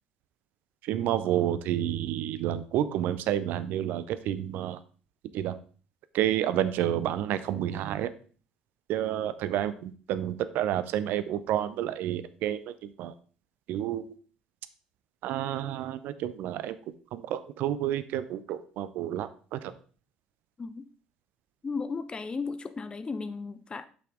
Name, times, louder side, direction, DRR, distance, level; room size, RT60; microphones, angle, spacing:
voice 1, 0.8-4.8 5.3-5.6 6.1-8.1 8.9-13.1 13.7-14.1 15.2-16.8 17.1-19.7, right 11 dB, 55° right, 13 dB, 0.5 m, -30 dB
voice 2, 21.6-23.9, left 4 dB, 25° left, 11 dB, 0.5 m, -35 dB
7.6 x 5.9 x 3.6 m, 0.41 s
figure-of-eight pair, 55°, 4 cm